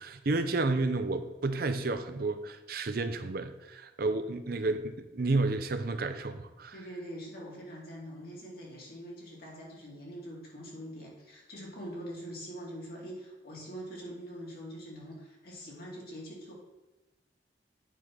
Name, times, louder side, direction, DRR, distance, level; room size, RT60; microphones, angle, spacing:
voice 1, 0.0-6.7, right 3 dB, 55° right, 9 dB, 0.6 m, -31 dB
voice 2, 6.7-16.5, equal, 60° left, -3 dB, 2.4 m, -43 dB
9.2 x 3.3 x 6.1 m, 1.1 s
head